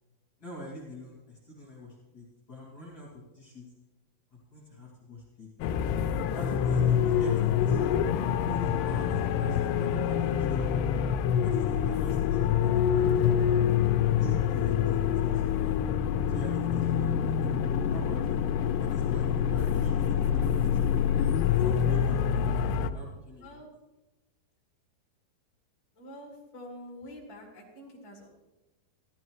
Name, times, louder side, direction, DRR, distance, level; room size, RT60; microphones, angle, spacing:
voice 1, 0.4-3.7 4.3-5.5 6.3-8.0 8.4-10.7 11.4-13.4 14.1-15.8 16.3-17.3 17.9-18.4 18.8-20.9 21.6-22.5 22.8-23.6, left 1 dB, 35° left, -5 dB, 2.6 m, -43 dB
sound 1, 5.6-22.9, left 8 dB, 90° left, 2.7 m, -26 dB
voice 2, 25.9-28.3, left 1 dB, 10° left, -3 dB, 2.2 m, -46 dB
15.5 x 12.5 x 3.1 m, 1.0 s
omnidirectional pair, 4.7 m